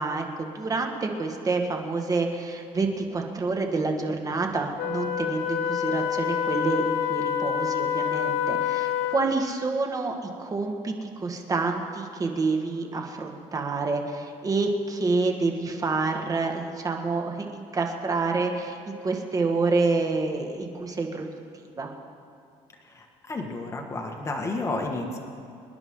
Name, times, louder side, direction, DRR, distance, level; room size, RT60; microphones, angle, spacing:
voice 1, 0.0-21.3 21.8-21.9, right 3 dB, 25° right, 3 dB, 1.8 m, -28 dB
Wind instrument woodwind instrument, 4.8-9.4, left 9 dB, 85° left, 0.9 m, -27 dB
voice 2, 22.8-25.2, left 2 dB, 20° left, 1 dB, 1.8 m, -31 dB
26.5 x 10.5 x 3.9 m, 2.5 s
cardioid pair, 110°, 13 cm